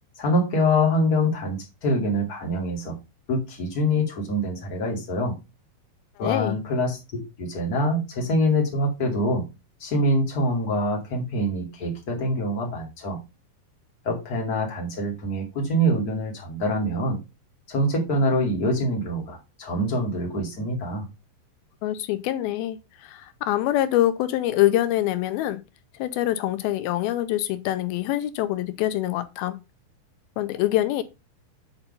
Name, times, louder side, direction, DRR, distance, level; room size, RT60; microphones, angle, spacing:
voice 1, 0.2-2.9 3.3-5.3 6.2-9.4 9.8-13.2 14.0-17.2 17.7-21.1, equal, 30° left, 2.5 m, -25 dB
voice 2, 6.2-6.6 21.8-25.6 26.0-29.6 30.4-31.0, left 14 dB, 85° left, 2.6 m, -25 dB
8.0 x 4.4 x 5.4 m
omnidirectional pair, 4.3 m